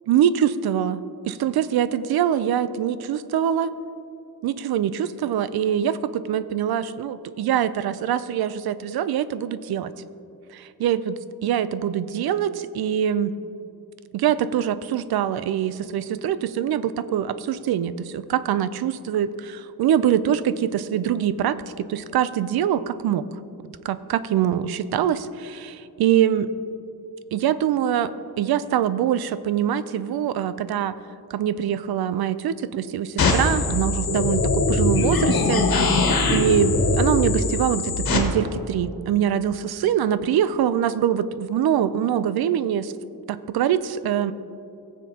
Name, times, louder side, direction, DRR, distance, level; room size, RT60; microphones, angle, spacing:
voice 1, 0.1-3.7 4.4-9.9 10.5-13.3 14.1-23.3 23.8-26.5 27.3-31.0 31.3-35.7 36.3-42.9 43.3-44.3, right 10 dB, 75° right, 15 dB, 0.5 m, -24 dB
sound 1, 33.2-38.2, left 3 dB, 70° left, 1.6 m, -21 dB
18.0 x 7.3 x 2.8 m, 2.8 s
wide cardioid pair, 150°, 38 cm